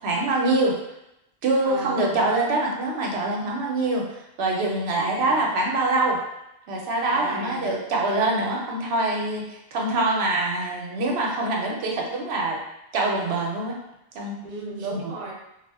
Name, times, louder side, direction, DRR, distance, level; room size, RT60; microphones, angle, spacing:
voice 1, 0.0-0.8 1.4-6.2 6.7-12.6 12.9-13.7 14.1-14.4 14.9-15.0, right 2 dB, 85° right, -1 dB, 0.8 m, -24 dB
voice 2, 1.6-2.2 4.9-5.5 7.1-7.7 14.4-15.3, right 2 dB, 45° right, -4 dB, 0.7 m, -35 dB
2.4 x 2.0 x 3.3 m, 0.85 s
omnidirectional pair, 1.1 m